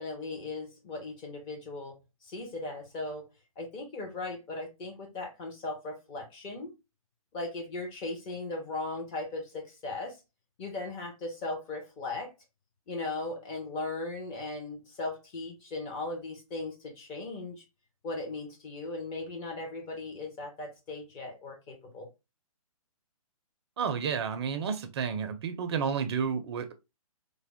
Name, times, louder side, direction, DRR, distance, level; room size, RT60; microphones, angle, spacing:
voice 1, 0.0-2.0 2.2-3.3 3.6-6.7 7.3-10.2 10.6-12.3 12.9-17.6 18.0-22.1, left 2 dB, 25° left, 0.9 m, -38 dB
voice 2, 23.8-26.7, right 6 dB, 45° right, 0.5 m, -31 dB
3.4 x 2.1 x 3.4 m
hypercardioid pair, 135°, 19 cm